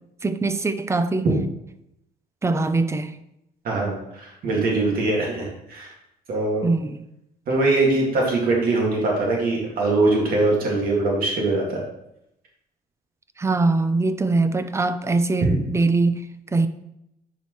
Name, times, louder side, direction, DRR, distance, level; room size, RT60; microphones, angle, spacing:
voice 1, 0.2-1.3 2.4-3.1 6.6-7.0 13.4-16.2 16.5-16.7, right 3 dB, 15° right, 11 dB, 0.5 m, -22 dB
voice 2, 3.6-5.9 6.3-6.7 7.5-11.8 15.4-15.6, right 2 dB, 60° right, -2 dB, 2.0 m, -22 dB
10.0 x 4.6 x 3.1 m, 0.81 s
cardioid pair, 110°, 17 cm